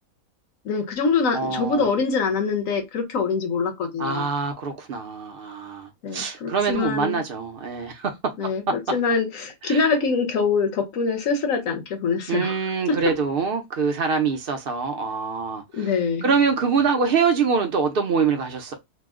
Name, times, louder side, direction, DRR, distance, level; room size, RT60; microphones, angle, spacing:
voice 1, 0.6-4.3 6.0-7.2 8.4-12.6 15.7-16.3, left 5 dB, 65° left, 1.2 m, -24 dB
voice 2, 1.3-1.9 4.0-8.5 9.6-9.9 12.3-15.6 16.2-18.7, right 5 dB, 60° right, 0.6 m, -24 dB
2.9 x 2.0 x 3.6 m
omnidirectional pair, 1.6 m